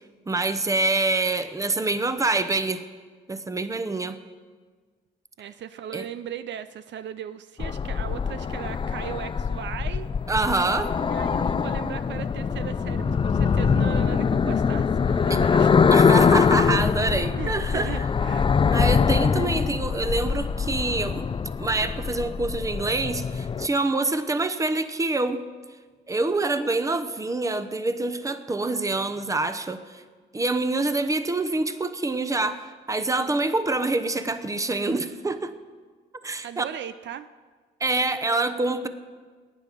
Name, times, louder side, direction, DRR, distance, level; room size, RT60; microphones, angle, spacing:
voice 1, 0.3-2.8 3.3-4.2 5.9-6.1 10.3-10.9 15.3-15.4 15.9-18.0 18.7-21.3 21.6-25.4 26.1-30.0 30.3-35.5 36.2-36.6 37.8-38.9, right 2 dB, 15° right, 10 dB, 0.9 m, -26 dB
voice 2, 5.4-10.1 11.1-15.8 17.4-18.5 36.4-37.3, right 10 dB, 65° right, 12 dB, 0.5 m, -37 dB
sound 1, 7.6-23.7, left 6 dB, 25° left, 0.4 m, -23 dB
18.0 x 9.1 x 5.2 m, 1.5 s
cardioid pair, 90°, 20 cm